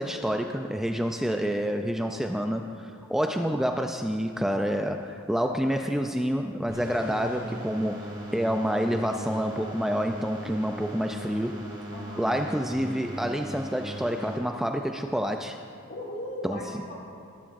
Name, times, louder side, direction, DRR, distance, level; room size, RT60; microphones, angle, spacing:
voice 1, 0.0-11.6 12.2-15.6 16.4-16.6, equal, ahead, 4 dB, 0.3 m, -28 dB
sound 1, 6.7-14.4, equal, 20° right, 2.2 m, -39 dB
voice 2, 11.9-12.4 15.9-16.9, left 1 dB, 55° left, -3 dB, 2.4 m, -38 dB
19.0 x 11.0 x 2.5 m, 2.5 s
head